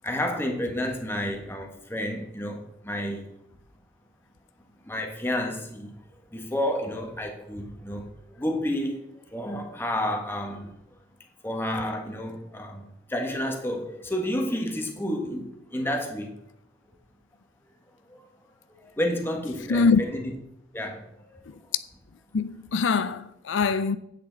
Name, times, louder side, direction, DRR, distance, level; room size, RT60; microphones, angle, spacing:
voice 1, 0.0-3.2 4.8-5.9 6.3-9.0 9.3-10.7 11.4-16.3 18.1-18.3 18.7-20.3 20.7-21.4, left 1 dB, 10° left, 1.5 m, -30 dB
voice 2, 19.7-20.0 21.5-21.6 22.3-24.0, left 5 dB, 85° left, 0.5 m, -23 dB
9.7 x 8.3 x 4.0 m
head